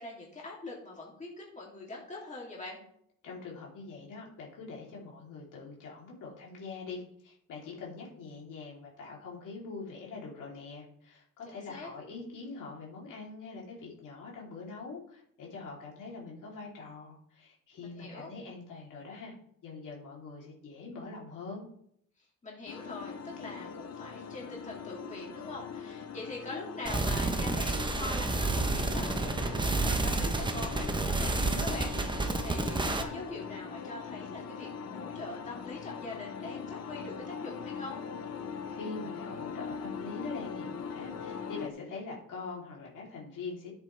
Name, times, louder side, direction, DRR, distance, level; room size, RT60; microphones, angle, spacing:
voice 1, 0.0-2.8 11.5-11.9 17.8-18.3 22.2-38.0, left 2 dB, 20° left, -3 dB, 2.9 m, -43 dB
voice 2, 3.2-19.3 19.6-21.6 38.7-43.8, left 4 dB, 70° left, -3 dB, 3.3 m, -43 dB
sound 1, 22.7-41.7, left 6 dB, 50° left, 0.9 m, -41 dB
sound 2, 26.8-33.0, right 3 dB, 15° right, 0.9 m, -30 dB
11.0 x 7.9 x 3.4 m, 0.69 s
cardioid pair, 120°, 33 cm